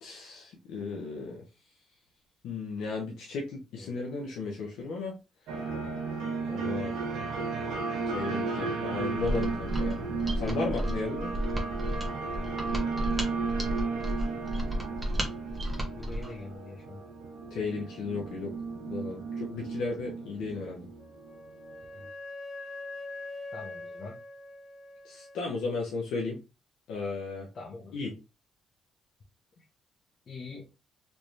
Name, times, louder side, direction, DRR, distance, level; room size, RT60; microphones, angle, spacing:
voice 1, 0.0-1.4 2.4-5.1 6.5-6.9 8.1-10.0 10.3-11.3 17.5-18.5 18.9-20.9 25.0-26.4 26.9-27.5 27.9-28.1, left 4 dB, 85° left, -1 dB, 0.9 m, -34 dB
sound 1, 5.5-21.8, right 4 dB, 90° right, 1.0 m, -34 dB
voice 2, 6.2-7.2 12.4-13.1 15.9-17.0 21.9-22.1 23.5-24.2 27.5-27.9 29.6-29.7 30.3-30.7, left 3 dB, 50° left, -2 dB, 1.0 m, -45 dB
Mechanisms, 9.2-16.4, equal, 10° right, 1.1 m, -33 dB
Wind instrument woodwind instrument, 21.0-25.6, left 2 dB, 70° left, 1.4 m, -43 dB
3.4 x 3.1 x 2.7 m, 0.28 s
cardioid pair, 90°, 0 cm